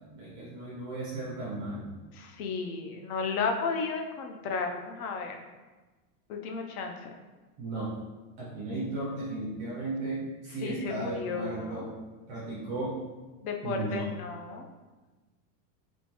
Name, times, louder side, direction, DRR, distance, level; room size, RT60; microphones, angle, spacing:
voice 1, 0.0-1.9 7.6-7.9 8.4-11.9 12.3-13.0 13.6-14.1, right 2 dB, 15° right, -8 dB, 0.4 m, -35 dB
voice 2, 2.1-5.4 6.3-7.1 10.6-11.9 13.4-14.7, left 4 dB, 60° left, 3 dB, 0.6 m, -33 dB
3.6 x 2.6 x 2.9 m, 1.2 s
supercardioid pair, 175°, 49 cm